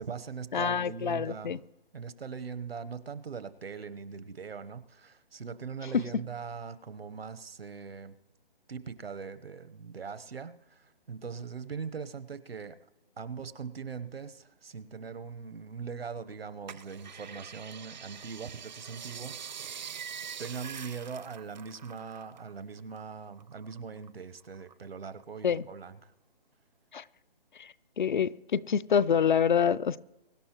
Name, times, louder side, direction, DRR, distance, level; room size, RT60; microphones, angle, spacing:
voice 1, 0.0-1.6 1.9-8.1 8.7-12.8 13.2-19.8 20.4-26.1, right 5 dB, 85° right, 13 dB, 1.1 m, -41 dB
voice 2, 0.5-1.6 25.4-25.6 26.9-27.0 27.6-30.0, left 7 dB, 55° left, 17 dB, 0.5 m, -27 dB
sound 1, 16.7-22.5 22.8-24.1 24.5-25.4 25.9-26.0, right 7 dB, 50° right, 0.5 m, -44 dB
23.5 x 11.0 x 3.0 m, 0.99 s
hypercardioid pair, 160°, 29 cm